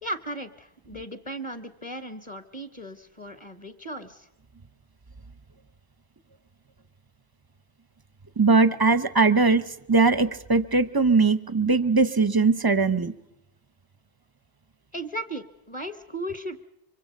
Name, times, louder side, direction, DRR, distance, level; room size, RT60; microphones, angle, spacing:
voice 1, 0.0-4.3 14.9-16.6, right 1 dB, 25° left, 9 dB, 1.2 m, -36 dB
voice 2, 8.4-13.1, right 4 dB, 25° right, 14 dB, 0.6 m, -20 dB
24.5 x 24.0 x 5.2 m, 0.88 s
omnidirectional pair, 1.2 m